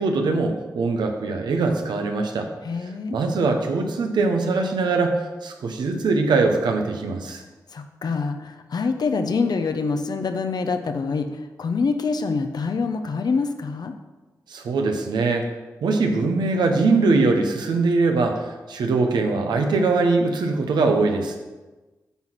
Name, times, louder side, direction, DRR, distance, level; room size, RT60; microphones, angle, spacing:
voice 1, 0.0-2.5 3.1-7.4 14.5-15.5 15.8-21.3, right 3 dB, 85° right, 4 dB, 1.0 m, -22 dB
voice 2, 2.6-3.2 7.7-11.3 11.6-13.9, left 4 dB, 65° left, 7 dB, 0.8 m, -25 dB
9.3 x 4.1 x 6.2 m, 1.2 s
supercardioid pair, 40°, 7 cm